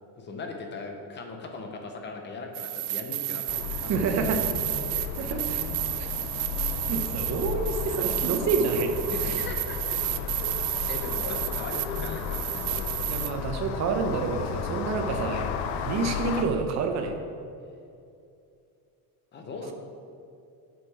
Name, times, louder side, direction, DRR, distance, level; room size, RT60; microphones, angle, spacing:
voice 1, 0.2-4.0 4.9-5.5 9.1-10.0 10.4-10.5 10.9-13.0 19.3-19.7, left 3 dB, 25° left, 3 dB, 0.8 m, -39 dB
sound 1, 2.5-13.3, right 17 dB, 85° right, 0.5 m, -32 dB
sound 2, 3.5-16.4, left 7 dB, 80° left, 0.7 m, -34 dB
voice 2, 3.9-4.4 5.2-5.6 6.0-6.1 6.9-9.0 9.2-9.4 13.1-15.6 15.8-17.1, right 4 dB, 40° right, 5 dB, 0.8 m, -28 dB
7.9 x 6.7 x 4.8 m, 2.5 s
cardioid pair, 175°, 40 cm